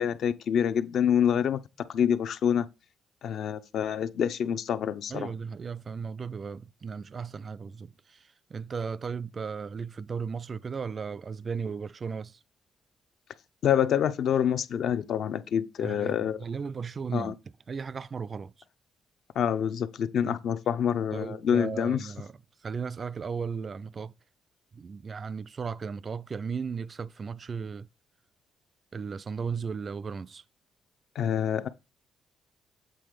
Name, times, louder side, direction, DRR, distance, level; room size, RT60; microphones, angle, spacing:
voice 1, 0.0-1.6 1.9-2.7 3.2-5.3 13.6-16.4 17.1-17.3 19.4-22.1 31.1-31.7, left 8 dB, 70° left, 0.6 m, -26 dB
voice 2, 5.1-12.4 15.8-17.4 17.7-18.5 20.2-20.4 21.1-22.4 22.6-24.1 24.7-27.9 28.9-30.4, right 5 dB, 40° right, 0.3 m, -36 dB
7.7 x 3.7 x 5.0 m
cardioid pair, 90°, 0 cm